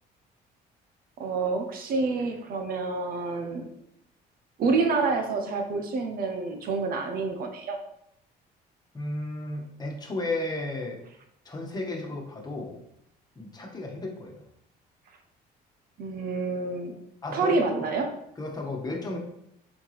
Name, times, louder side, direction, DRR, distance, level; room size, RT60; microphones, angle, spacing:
voice 1, 1.2-3.6 4.6-7.8 16.0-16.9 17.3-18.1, right 4 dB, 60° right, 5 dB, 1.0 m, -28 dB
voice 2, 8.9-11.0 11.4-12.8 13.3-14.4 17.2-17.9 18.4-19.2, left 2 dB, 25° left, 0 dB, 1.6 m, -33 dB
7.0 x 4.6 x 3.5 m, 0.75 s
cardioid pair, 110°, 17 cm